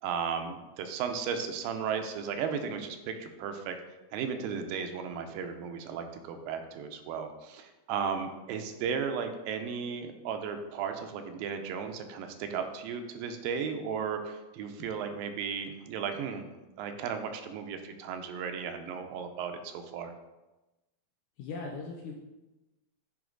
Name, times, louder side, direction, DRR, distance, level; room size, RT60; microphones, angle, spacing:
voice 1, 0.0-3.8 4.1-16.5 16.8-20.1, right 6 dB, 80° right, 6 dB, 2.4 m, -35 dB
voice 2, 21.4-22.2, left 4 dB, 80° left, 0 dB, 1.8 m, -39 dB
10.0 x 3.5 x 3.8 m, 1.0 s
omnidirectional pair, 4.1 m